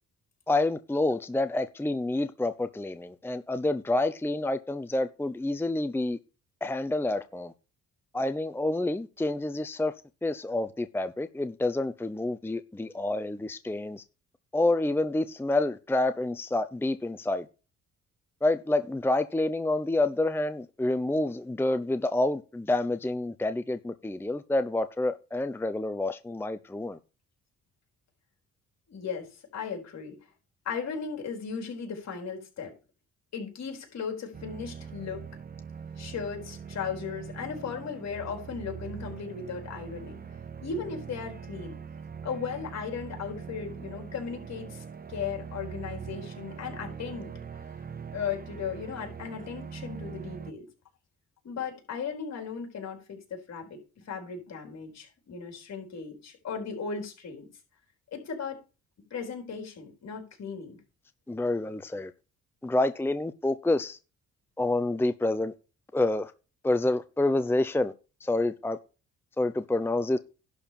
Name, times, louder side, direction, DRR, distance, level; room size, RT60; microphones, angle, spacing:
voice 1, 0.5-6.2 6.6-7.5 8.1-9.9 10.2-14.0 14.5-17.4 18.4-27.0 61.3-62.1 62.6-64.0 64.6-65.5 65.9-66.3 66.6-67.9 68.2-68.8 69.4-70.2, left 2 dB, 5° left, 0.7 m, -28 dB
voice 2, 28.9-30.2 30.6-32.7 33.3-35.2 36.0-40.2 40.6-41.8 42.2-47.3 48.1-50.7 51.4-57.5 58.1-58.6 59.1-60.8, left 6 dB, 60° left, 4.2 m, -36 dB
sound 1, 34.3-50.5, right 6 dB, 30° right, 1.0 m, -42 dB
11.5 x 4.5 x 6.9 m
cardioid pair, 90°, 30 cm